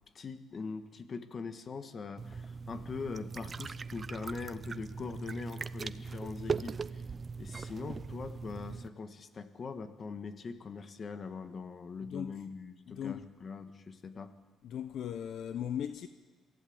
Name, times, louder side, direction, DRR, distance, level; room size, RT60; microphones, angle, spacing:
voice 1, 0.1-7.0 7.4-14.3, left 4 dB, 35° left, 1.5 m, -42 dB
sound 1, 2.2-8.9, right 5 dB, 30° right, 0.5 m, -40 dB
voice 2, 12.0-12.4 12.9-13.3 14.6-16.1, left 9 dB, 60° left, 0.8 m, -38 dB
23.5 x 15.0 x 8.7 m
cardioid pair, 120°, 0 cm